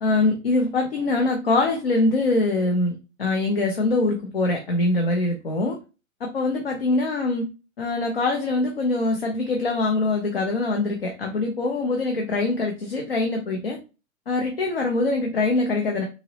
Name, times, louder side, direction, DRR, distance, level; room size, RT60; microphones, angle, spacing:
voice 1, 0.0-5.8 6.2-7.4 7.8-13.8 14.3-16.0, left 2 dB, 45° left, 2 dB, 0.5 m, -23 dB
3.8 x 2.0 x 2.6 m, 0.31 s
hypercardioid pair, 175°, 42 cm